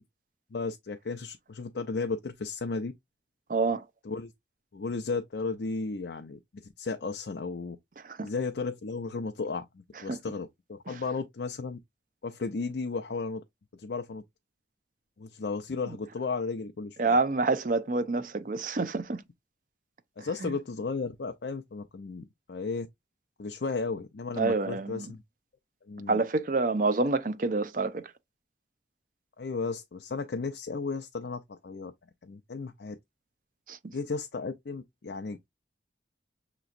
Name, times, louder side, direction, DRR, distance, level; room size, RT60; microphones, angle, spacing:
voice 1, 0.5-2.9 4.0-4.3 4.7-7.8 8.2-11.8 12.2-13.4 13.7-14.2 15.2-17.2 20.2-22.9 23.4-25.2 25.9-26.2 29.4-31.9 32.2-33.0 33.9-35.5, left 4 dB, 70° left, 0.5 m, -34 dB
voice 2, 3.5-3.8 8.2-8.3 10.1-10.2 17.0-19.2 20.2-20.5 24.4-25.1 26.1-28.1 33.7-33.8, right 3 dB, 45° right, 0.5 m, -27 dB
6.7 x 3.0 x 2.5 m
head